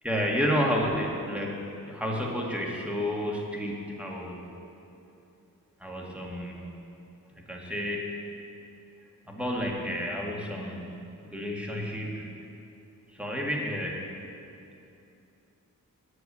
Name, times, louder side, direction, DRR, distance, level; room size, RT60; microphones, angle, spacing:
voice 1, 0.0-4.4 5.8-6.7 7.5-8.1 9.3-12.3 13.1-14.1, equal, 5° right, -2 dB, 1.7 m, -31 dB
7.9 x 6.8 x 6.7 m, 2.7 s
cardioid pair, 65°, 34 cm